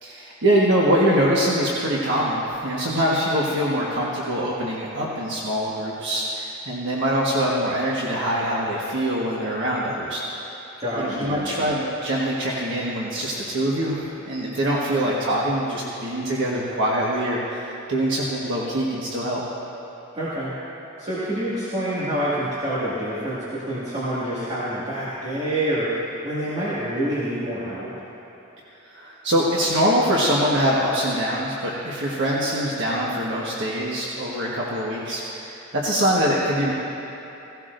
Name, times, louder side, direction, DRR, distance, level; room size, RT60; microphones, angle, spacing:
voice 1, 0.0-10.5 11.0-19.4 28.8-36.7, equal, 60° right, -5 dB, 1.4 m, -24 dB
voice 2, 10.8-11.5 20.1-20.5 21.0-27.9, right 1 dB, 30° right, -11 dB, 2.1 m, -27 dB
17.0 x 17.0 x 2.6 m, 3.0 s
head